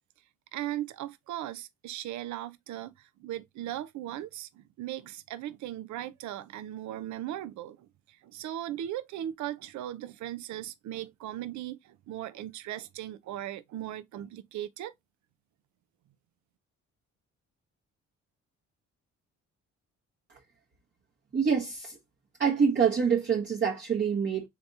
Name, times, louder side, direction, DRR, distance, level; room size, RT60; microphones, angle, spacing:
voice 1, 0.5-14.9, right 13 dB, 70° right, 0.5 m, -38 dB
voice 2, 21.3-22.0 22.4-24.5, right 6 dB, 35° right, 1.1 m, -26 dB
3.6 x 2.9 x 4.0 m
cardioid pair, 90°, 30 cm